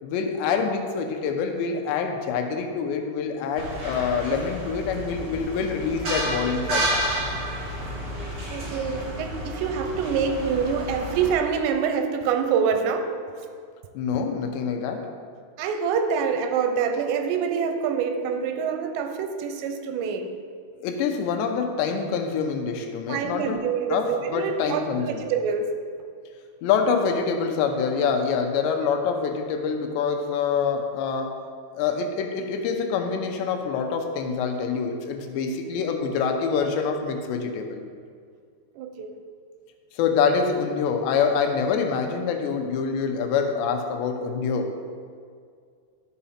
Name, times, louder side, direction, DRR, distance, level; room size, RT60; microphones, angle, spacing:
voice 1, 0.0-7.1 14.0-15.1 20.8-23.6 23.9-25.3 26.6-31.4 31.7-37.8 39.9-44.7, left 5 dB, 80° left, 4 dB, 2.9 m, -26 dB
sound 1, 3.6-11.3, right 1 dB, 40° right, 2.5 m, -31 dB
voice 2, 8.5-13.1 15.6-20.3 23.1-25.7 38.8-39.1, right 6 dB, 90° right, 6 dB, 2.9 m, -26 dB
12.5 x 5.8 x 4.3 m, 2.1 s
omnidirectional pair, 5.1 m